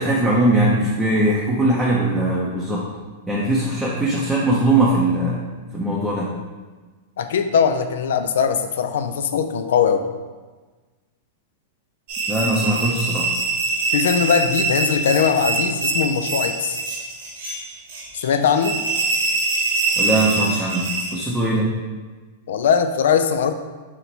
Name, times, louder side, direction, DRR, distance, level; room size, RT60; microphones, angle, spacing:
voice 1, 0.0-2.9 3.3-5.4 5.7-6.3 12.3-13.3 20.0-21.7, right 1 dB, 5° right, -6 dB, 0.6 m, -20 dB
voice 2, 7.2-10.1 13.9-16.8 18.1-18.8 22.5-23.5, left 7 dB, 80° left, 8 dB, 0.3 m, -20 dB
sound 1, 12.1-21.2, right 3 dB, 60° right, 0.7 m, -24 dB
4.3 x 2.1 x 4.0 m, 1.3 s
hypercardioid pair, 140°, 0 cm